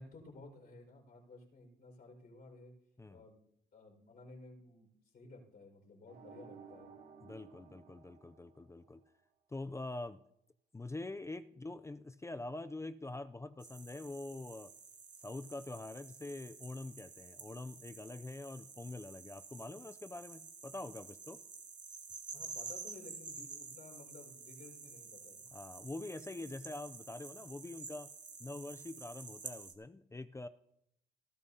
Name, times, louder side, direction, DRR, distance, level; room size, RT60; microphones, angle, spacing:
voice 1, 0.0-2.7 3.1-3.4 3.7-4.9 5.1-6.9 22.3-25.4, left 2 dB, 55° left, -1 dB, 5.1 m, -55 dB
sound 1, 6.1-9.0, right 6 dB, 60° right, 1.7 m, -56 dB
voice 2, 7.2-9.0 9.5-10.2 10.7-14.7 15.2-21.4 25.5-28.1 28.4-30.5, left 2 dB, 15° left, 12 dB, 0.4 m, -45 dB
sound 2, 13.6-29.7, right 5 dB, 40° right, 1.6 m, -50 dB
19.0 x 12.5 x 2.8 m, 0.79 s
cardioid pair, 90°, 20 cm